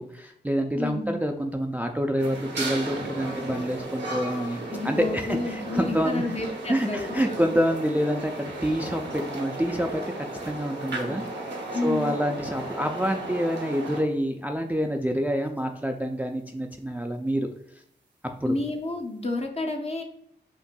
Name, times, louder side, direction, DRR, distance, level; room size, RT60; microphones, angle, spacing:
voice 1, 0.0-6.2 6.7-10.1 10.4-11.2 11.8-17.5 18.4-18.5, equal, 10° right, 3 dB, 0.3 m, -27 dB
voice 2, 0.8-1.2 4.7-7.6 11.7-12.2 18.4-20.0, left 2 dB, 35° left, 3 dB, 0.7 m, -30 dB
sound 1, 2.2-14.0, right 2 dB, 75° right, 0.9 m, -35 dB
5.3 x 2.6 x 2.2 m, 0.72 s
cardioid pair, 55°, 18 cm